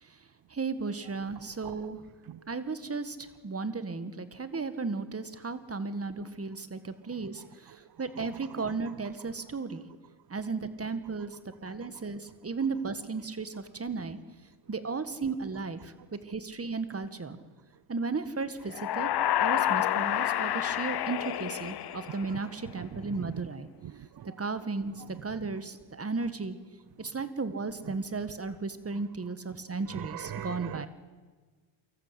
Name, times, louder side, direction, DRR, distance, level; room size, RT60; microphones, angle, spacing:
voice 1, 0.5-2.0 2.5-3.2 3.4-7.4 8.0-9.8 10.3-11.3 11.6-14.2 14.7-17.4 17.9-19.1 19.4-23.7 24.4-24.9 25.2-26.6 27.0-30.9, right 4 dB, 30° right, 11 dB, 1.7 m, -34 dB
sound 1, 18.7-22.5, left 12 dB, 55° left, 0.6 m, -29 dB
voice 2, 22.0-22.4 22.8-23.4 23.8-24.4 25.0-25.1 25.4-25.5 27.9-28.0 29.9-30.9, right 12 dB, 50° right, 18 dB, 0.6 m, -42 dB
24.5 x 14.0 x 8.4 m, 1.4 s
cardioid pair, 70°, 47 cm